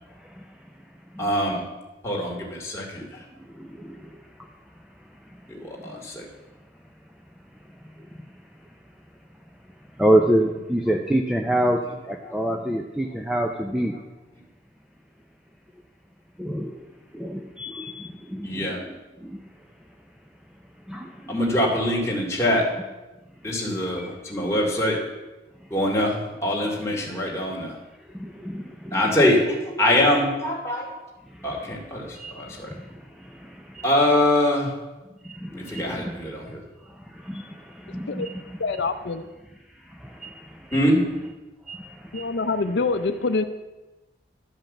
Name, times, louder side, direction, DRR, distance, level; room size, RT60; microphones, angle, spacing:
voice 1, 0.1-0.5 1.1-1.3 3.0-3.1 3.4-4.2 5.3-5.4 8.0-8.1 10.0-11.8 12.1-14.0 16.4-16.9 17.1-19.4 20.9-21.5 23.7-24.1 28.1-28.6 29.3-29.4 31.3-31.9 32.2-33.8 35.2-36.3 36.8-38.6 39.9-40.8 41.7-42.4, right 1 dB, 5° right, 2 dB, 0.5 m, -28 dB
voice 2, 1.2-1.7 2.0-3.0 5.5-6.2 12.2-12.4 18.4-18.8 21.3-22.6 23.4-25.0 25.7-27.8 28.9-29.4 29.8-30.9 31.4-32.7 33.8-34.7 35.5-36.6 40.7-41.0, left 1 dB, 15° left, -2 dB, 2.1 m, -23 dB
voice 3, 37.9-38.3 38.6-39.2 42.1-43.4, left 3 dB, 75° left, 9 dB, 0.6 m, -25 dB
12.0 x 5.5 x 7.2 m, 1.1 s
head